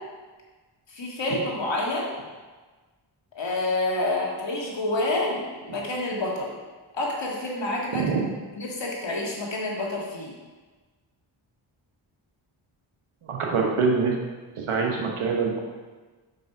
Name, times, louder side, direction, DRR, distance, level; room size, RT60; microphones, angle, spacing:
voice 1, 0.9-2.1 3.4-6.5 6.9-8.1 8.5-10.3, left 2 dB, 60° left, -2 dB, 1.8 m, -28 dB
voice 2, 7.9-8.2 13.2-14.2 14.6-15.6, right 5 dB, 85° right, 0 dB, 1.2 m, -24 dB
5.3 x 5.3 x 4.6 m, 1.3 s
cardioid pair, 45°, 49 cm